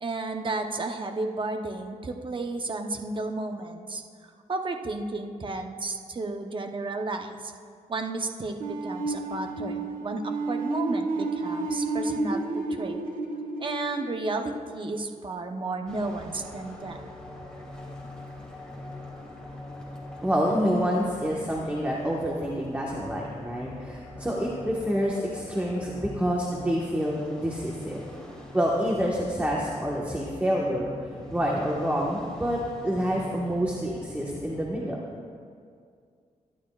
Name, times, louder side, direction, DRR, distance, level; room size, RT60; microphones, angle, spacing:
voice 1, 0.0-7.5 7.9-13.0 13.6-17.0, right 3 dB, 35° right, 4 dB, 0.9 m, -33 dB
sound 1, 8.6-15.5, right 2 dB, 80° right, 1.4 m, -31 dB
sound 2, 15.9-34.6, left 1 dB, 5° left, 2.7 m, -43 dB
voice 2, 20.2-28.0 28.5-30.9 31.3-35.0, equal, 10° right, -3 dB, 1.4 m, -27 dB
22.5 x 11.5 x 2.4 m, 2.2 s
wide cardioid pair, 100°, 14 cm